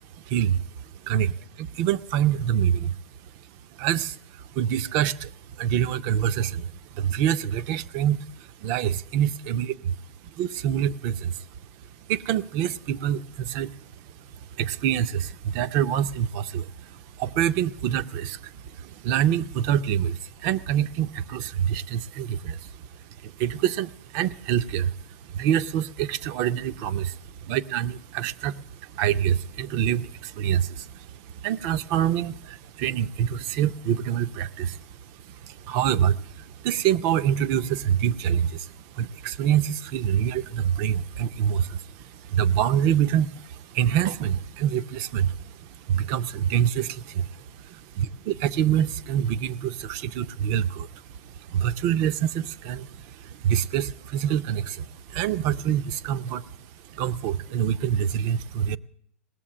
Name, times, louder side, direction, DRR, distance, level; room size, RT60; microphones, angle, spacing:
voice 1, 0.1-3.0 3.2-3.3 3.7-9.8 10.2-11.5 11.8-47.3 47.9-58.8, right 10 dB, 40° right, 15 dB, 0.6 m, -26 dB
18.5 x 7.3 x 9.9 m, 0.67 s
hypercardioid pair, 135°, 8 cm